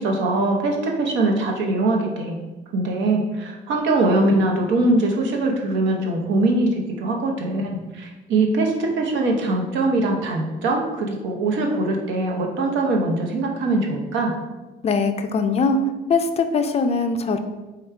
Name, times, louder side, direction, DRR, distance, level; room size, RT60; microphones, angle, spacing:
voice 1, 0.0-2.4 2.7-7.6 7.9-14.3, right 2 dB, 80° right, 1 dB, 0.9 m, -22 dB
voice 2, 14.8-15.8 16.1-17.4, left 4 dB, 35° left, 8 dB, 0.3 m, -21 dB
4.8 x 2.3 x 4.5 m, 1.2 s
cardioid pair, 120°, 19 cm